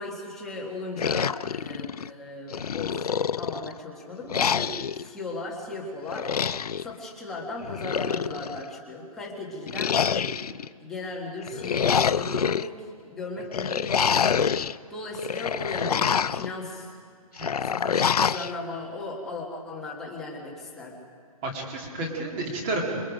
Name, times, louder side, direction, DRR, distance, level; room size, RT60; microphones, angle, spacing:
voice 1, 0.0-3.1 3.4-10.3 10.8-17.0 17.6-21.0, left 2 dB, ahead, -4 dB, 1.5 m, -37 dB
sound 1, 1.0-2.1 2.5-3.7 4.3-5.0 6.1-6.9 7.6-8.6 9.7-10.7 11.4-12.7 13.5-14.7 15.1-16.5 17.4-18.5, left 7 dB, 80° left, 0.6 m, -26 dB
voice 2, 21.4-23.0, right 2 dB, 15° right, 0 dB, 2.3 m, -31 dB
27.0 x 21.0 x 5.1 m, 2.1 s
hypercardioid pair, 175°, 19 cm